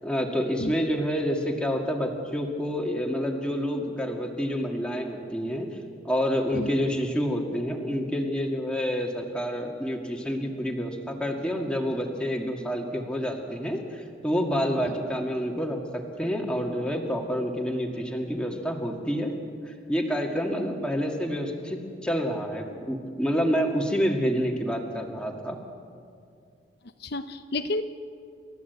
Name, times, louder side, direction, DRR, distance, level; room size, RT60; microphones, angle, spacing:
voice 1, 0.0-5.7 6.0-19.3 19.9-25.6, equal, 5° left, 1 dB, 2.1 m, -28 dB
voice 2, 27.0-27.8, left 2 dB, 55° left, 8 dB, 0.8 m, -31 dB
29.0 x 14.0 x 8.2 m, 2.4 s
head